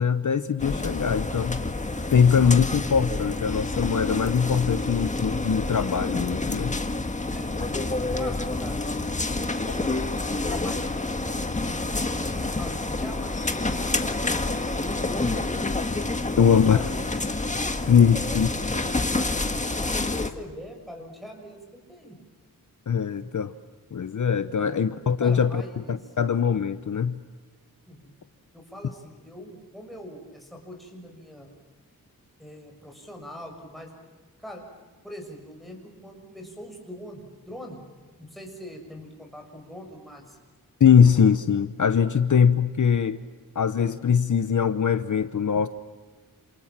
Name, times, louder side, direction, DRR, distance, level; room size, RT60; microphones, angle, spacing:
voice 1, 0.0-1.6 2.1-6.8 16.4-16.9 17.9-18.5 22.9-23.5 23.9-27.2 40.8-43.2 43.5-45.7, left 7 dB, 55° left, 11 dB, 1.0 m, -21 dB
sound 1, 0.6-20.3, left 2 dB, 20° left, 1.7 m, -28 dB
voice 2, 7.3-10.0 10.5-11.5 12.3-16.0 16.3-17.2 18.1-18.9 19.8-22.2 24.6-24.8 25.2-26.1 27.9-28.1 28.5-31.5 32.4-33.9 34.4-34.6 35.0-37.8 38.2-40.4, equal, ahead, 1 dB, 6.5 m, -43 dB
28.0 x 27.5 x 7.5 m, 1.4 s
wide cardioid pair, 140°, 36 cm